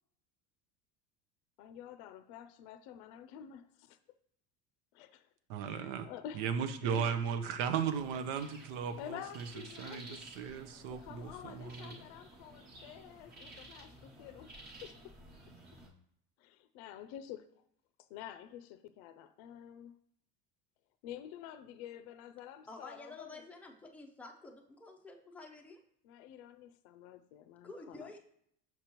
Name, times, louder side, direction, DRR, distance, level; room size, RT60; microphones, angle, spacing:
voice 1, 1.6-4.0 4.9-5.3 5.6-7.2 9.0-14.5 14.8-15.1 16.4-17.5 18.1-20.0 21.0-23.4 26.0-28.1, left 10 dB, 70° left, 11 dB, 0.5 m, -49 dB
voice 2, 5.5-6.1 6.3-9.5 9.8-12.0, right 7 dB, 85° right, 10 dB, 0.8 m, -36 dB
sound 1, 7.8-15.9, right 1 dB, 30° right, 1.1 m, -53 dB
voice 3, 22.7-25.8 27.6-28.2, left 2 dB, 5° left, 1 dB, 0.4 m, -50 dB
6.7 x 6.0 x 3.0 m, 0.71 s
cardioid pair, 170°, 34 cm